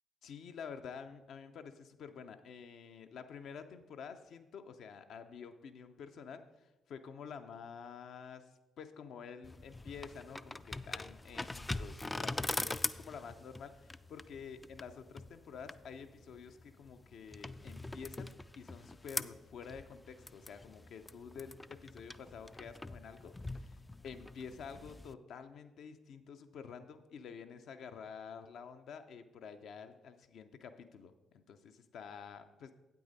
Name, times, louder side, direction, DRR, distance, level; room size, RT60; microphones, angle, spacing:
voice 1, 0.2-8.5 8.8-23.8 24.0-32.7, left 6 dB, 65° left, 8 dB, 0.6 m, -49 dB
sound 1, 9.4-25.1, left 2 dB, 20° left, 0.3 m, -43 dB
8.7 x 8.4 x 4.1 m, 1.1 s
hypercardioid pair, 50°, 0 cm